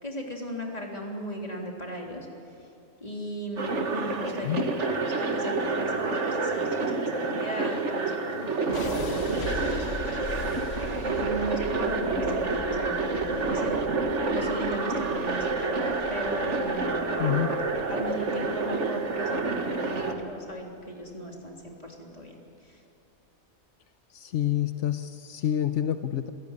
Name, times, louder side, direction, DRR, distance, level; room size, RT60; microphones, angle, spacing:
voice 1, 0.0-2.3 2.6-2.7 3.0-10.6 10.9-13.8 14.3-17.4 17.9-22.8, equal, 35° left, -1 dB, 3.6 m, -37 dB
sound 1, 3.6-20.1, right 3 dB, 80° right, 1.9 m, -28 dB
sound 2, 8.7-20.7, left 4 dB, 65° left, 1.5 m, -41 dB
voice 2, 17.2-17.6 24.1-26.3, left 11 dB, 85° left, 9 dB, 1.1 m, -28 dB
27.5 x 16.0 x 9.6 m, 2.6 s
omnidirectional pair, 1.2 m